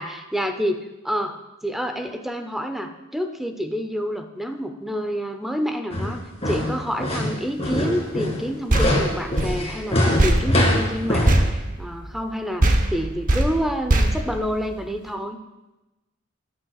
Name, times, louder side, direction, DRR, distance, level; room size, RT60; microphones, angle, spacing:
voice 1, 0.0-15.4, equal, ahead, 6 dB, 0.6 m, -28 dB
sound 1, 5.9-11.4, left 1 dB, 30° left, 2.3 m, -23 dB
sound 2, 8.7-12.3 12.6-15.1, right 1 dB, 40° right, 0.9 m, -22 dB
13.5 x 9.6 x 2.4 m, 1.0 s
head